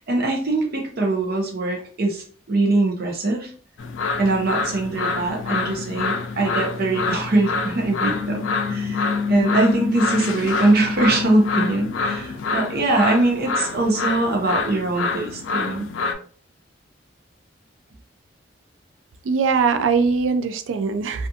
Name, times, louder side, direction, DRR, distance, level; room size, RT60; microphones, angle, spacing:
voice 1, 0.0-3.5 4.2-8.4 8.7-15.9, right 2 dB, 55° right, 1 dB, 0.7 m, -22 dB
sound 1, 3.8-16.1, left 4 dB, 85° left, 0.4 m, -26 dB
voice 2, 19.2-21.3, right 5 dB, 90° right, 8 dB, 0.3 m, -21 dB
2.4 x 2.4 x 2.7 m, 0.43 s
head